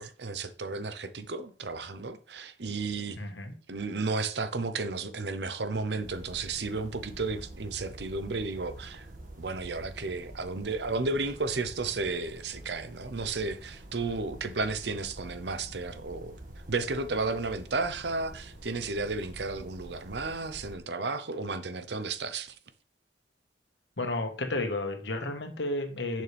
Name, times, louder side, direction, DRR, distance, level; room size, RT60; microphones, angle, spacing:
voice 1, 0.0-3.2 3.7-9.1 9.4-16.4 16.7-22.6, right 3 dB, 70° right, 0.9 m, -33 dB
voice 2, 3.2-3.5 24.0-26.2, left 2 dB, 80° left, 1.5 m, -32 dB
sound 1, 6.0-20.8, right 1 dB, 50° right, 1.9 m, -47 dB
11.0 x 6.5 x 3.5 m
head